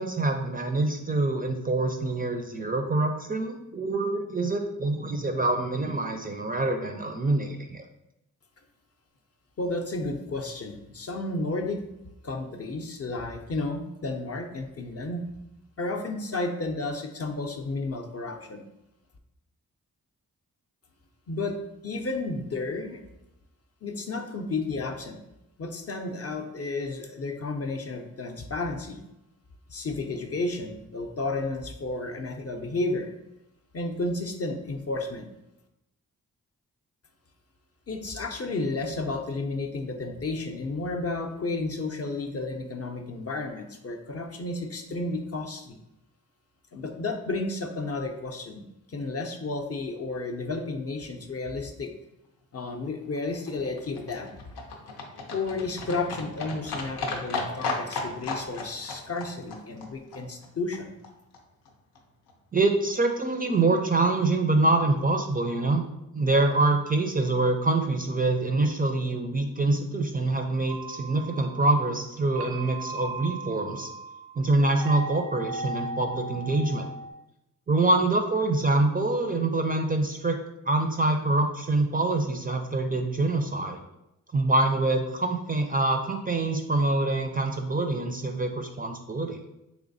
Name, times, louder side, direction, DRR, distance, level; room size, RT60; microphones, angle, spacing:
voice 1, 0.0-7.8 62.5-65.8 66.1-73.9 74.4-76.9 77.7-80.4 80.7-83.8 84.3-89.4, right 2 dB, 25° right, 4 dB, 0.4 m, -25 dB
voice 2, 9.6-11.8 12.2-15.2 15.8-18.6 21.3-21.6 21.8-23.0 23.8-25.2 25.6-29.0 29.7-33.1 33.7-35.3 37.9-45.8 46.7-51.9 52.5-54.3 55.3-60.9, left 3 dB, 40° left, 4 dB, 0.5 m, -32 dB
Livestock farm animals working animals, 52.9-61.1 61.3-61.4 61.7-61.8 62.0-62.1 62.3-62.4 62.6-62.7 62.9-63.0 63.2-63.3 63.5-63.6, left 3 dB, 90° left, 0.6 m, -35 dB
sound 1, 70.7-77.1, right 2 dB, 75° right, 0.5 m, -38 dB
3.2 x 3.1 x 2.6 m, 0.88 s
cardioid pair, 45°, 37 cm